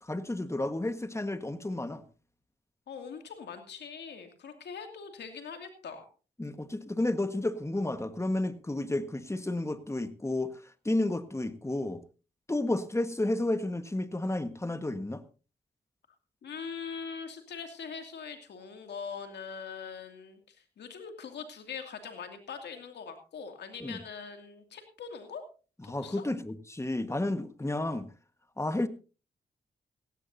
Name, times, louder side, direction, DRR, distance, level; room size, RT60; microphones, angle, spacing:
voice 1, 0.0-2.0 6.4-10.5 10.8-12.0 12.5-15.2 23.8-24.0 25.9-28.1 28.6-28.9, left 2 dB, 15° left, 11 dB, 1.5 m, -31 dB
voice 2, 2.9-6.1 16.4-25.4 25.8-26.2, left 6 dB, 85° left, 6 dB, 2.5 m, -42 dB
16.5 x 15.5 x 2.7 m, 0.35 s
cardioid pair, 55°, 17 cm